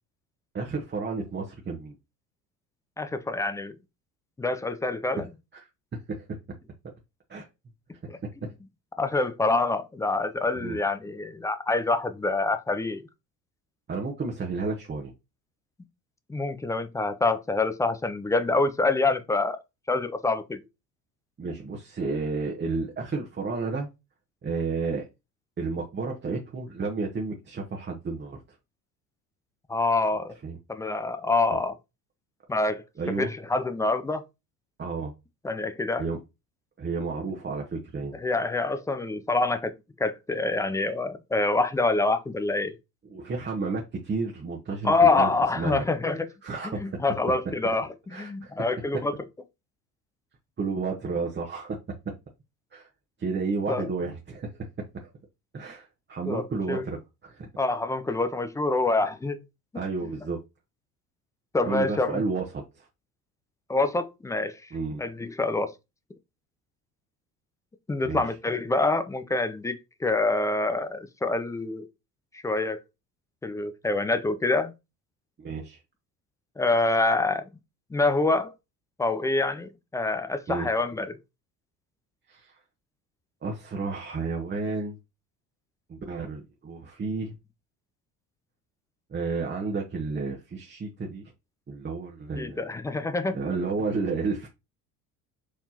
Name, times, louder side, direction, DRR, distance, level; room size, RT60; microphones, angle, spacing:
voice 1, 0.5-1.9 5.5-5.6 6.1-6.2 7.3-7.5 8.4-8.5 9.2-9.3 10.6-10.8 13.9-15.1 21.4-23.9 24.4-25.1 25.6-28.4 30.4-30.6 31.5-31.6 33.0-33.3 34.8-35.1 36.0-36.2 36.8-38.2 43.1-45.3 45.6-45.8 46.4-47.0 48.1-48.5 50.6-51.8 52.0-52.1 52.7-52.9 53.2-54.5 55.5-57.0 57.2-57.5 59.7-60.4 61.6-62.9 64.7-65.0 68.0-68.2 75.4-75.8 80.5-80.7 82.3-82.6 83.4-85.0 85.9-87.4 89.1-91.2 91.7-92.6 93.3-94.5, right 4 dB, 20° right, 1.0 m, -31 dB
voice 2, 3.0-3.7 4.4-5.3 8.1-8.2 9.0-13.0 16.3-19.6 19.9-20.6 29.7-30.3 30.7-31.7 32.5-34.2 35.4-36.0 38.1-39.7 40.0-42.7 44.8-46.3 46.6-49.2 53.7-53.9 56.3-56.9 57.6-59.4 61.5-62.2 63.7-64.6 65.0-65.7 67.9-71.9 72.3-72.8 73.4-74.7 76.6-77.4 77.9-78.5 79.0-81.2 92.4-93.4, left 3 dB, 10° left, 0.3 m, -26 dB
4.7 x 3.5 x 2.8 m
figure-of-eight pair, 65°, 47 cm